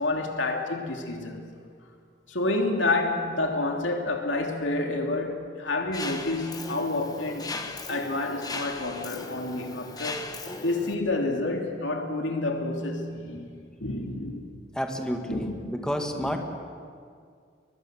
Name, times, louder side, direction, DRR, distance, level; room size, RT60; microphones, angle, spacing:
voice 1, 0.0-1.4 2.3-7.5 7.9-10.3 10.6-14.4 15.3-15.8 16.1-16.4, left 2 dB, 90° left, 3 dB, 2.9 m, -29 dB
Mechanisms, 5.9-10.9, left 3 dB, 20° left, 1.4 m, -37 dB
voice 2, 14.7-16.4, equal, 5° left, 3 dB, 1.9 m, -30 dB
22.5 x 22.0 x 7.8 m, 2.2 s
head